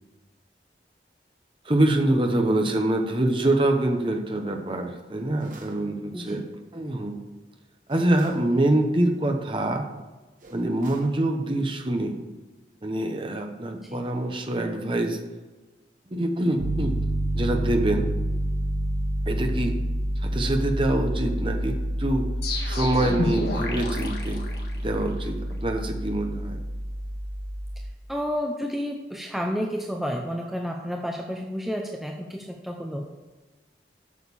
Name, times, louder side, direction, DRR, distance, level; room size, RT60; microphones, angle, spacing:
voice 1, 1.6-6.4 6.7-7.3 7.9-9.9 10.5-12.2 12.8-15.2 16.1-16.9 17.3-18.1 19.3-19.8 20.2-22.3 22.6-24.4 24.7-26.6, right 1 dB, 30° right, 4 dB, 1.0 m, -25 dB
sound 1, 5.4-5.8 7.9-8.5 10.4-11.2, right 2 dB, 45° right, 1.4 m, -49 dB
Piano, 16.6-27.9, right 1 dB, 75° right, 0.9 m, -28 dB
sound 2, 22.4-25.2, left 2 dB, 65° left, 1.7 m, -31 dB
voice 2, 28.1-33.1, equal, ahead, 1 dB, 0.5 m, -31 dB
8.4 x 6.7 x 7.1 m, 1.2 s
head